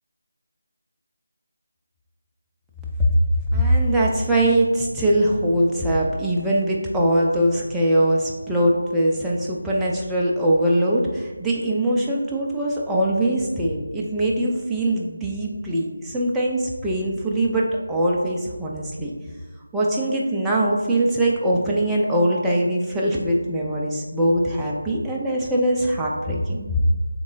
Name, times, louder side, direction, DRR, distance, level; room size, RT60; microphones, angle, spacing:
voice 1, 3.5-19.1 19.7-26.8, right 1 dB, 5° right, -5 dB, 0.3 m, -22 dB
3.7 x 3.0 x 3.8 m, 1.3 s
figure-of-eight pair, 175°, 0 cm